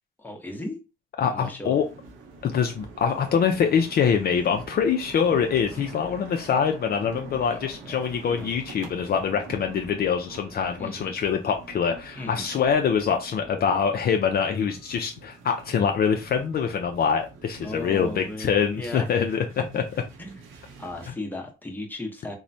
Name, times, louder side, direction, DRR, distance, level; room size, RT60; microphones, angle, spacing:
voice 1, 0.2-0.8 1.2-1.8 5.7-5.8 7.5-8.0 8.3-8.5 10.8-11.1 12.2-12.5 17.6-19.1 19.7-19.8 20.2-20.4 20.8-22.3, left 1 dB, 10° left, 1 dB, 0.8 m, -36 dB
voice 2, 1.2-1.8 2.4-19.4 19.7-19.8, left 7 dB, 50° left, 4 dB, 0.4 m, -24 dB
sound 1, 1.7-21.1, right 4 dB, 90° right, 0.7 m, -45 dB
3.0 x 2.1 x 2.6 m, 0.29 s
cardioid pair, 90°, 20 cm